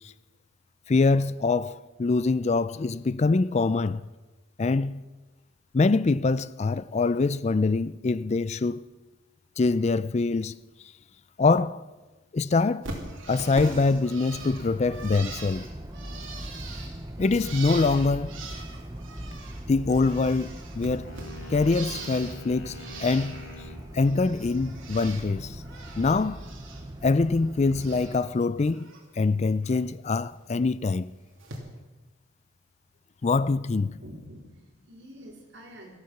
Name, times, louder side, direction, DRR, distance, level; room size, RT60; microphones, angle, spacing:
voice 1, 0.9-4.0 4.6-5.0 5.7-8.8 9.6-10.5 11.4-11.8 12.3-12.9 13.3-15.7 17.2-18.4 19.7-21.1 21.5-23.4 23.9-25.6 26.0-26.4 27.0-28.9 29.2-31.1 33.2-34.0, left 3 dB, 35° left, 0.4 m, -24 dB
Bird, 12.8-19.6 19.9-22.4 22.7-23.6 23.9-25.3 25.6-26.8 27.1-28.2 28.6-29.0 30.3-30.4 31.4-31.6, right 3 dB, 75° right, 3.0 m, -42 dB
sound 1, 14.3-28.1, right 1 dB, 15° right, 0.8 m, -40 dB
sound 2, 21.0-23.9, left 2 dB, 60° left, 4.4 m, -45 dB
voice 2, 34.0-36.0, equal, 60° right, 3.5 m, -46 dB
14.5 x 14.0 x 5.9 m
head